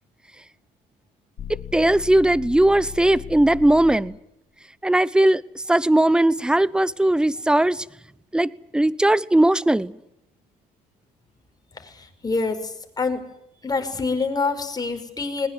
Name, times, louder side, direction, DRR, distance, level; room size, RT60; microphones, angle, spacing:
sound 1, 1.4-4.2, left 10 dB, 55° left, 3.2 m, -37 dB
voice 1, 1.5-4.2 4.8-5.4 5.7-7.8 8.3-9.9, right 1 dB, 5° right, 0.9 m, -19 dB
voice 2, 11.7-13.2 13.6-15.5, left 4 dB, 25° left, 5.3 m, -26 dB
21.0 x 20.5 x 9.4 m
cardioid pair, 110°, 17 cm